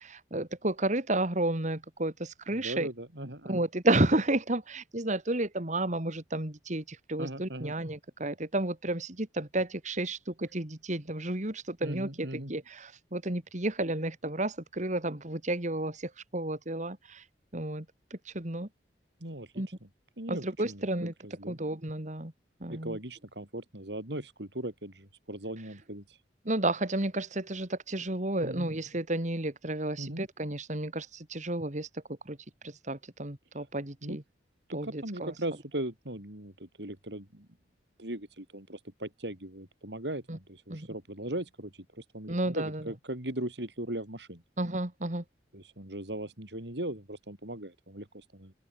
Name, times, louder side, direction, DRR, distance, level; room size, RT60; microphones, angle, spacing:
voice 1, 0.0-2.9 3.5-17.3 17.5-18.7 19.6-19.7 20.3-21.1 21.5-22.3 22.6-23.0 26.4-32.4 32.6-34.2 34.7-35.3 40.3-40.4 40.7-40.9 42.3-42.8 44.6-45.2, right 1 dB, 45° right, 2.6 m, -32 dB
voice 2, 2.5-3.6 7.2-7.7 11.8-12.5 19.2-19.9 20.2-20.9 21.2-21.6 22.7-26.2 28.4-28.7 30.0-30.2 34.0-34.2 34.7-37.5 38.0-44.4 45.5-48.5, right 1 dB, 75° right, 5.3 m, -39 dB
open air
head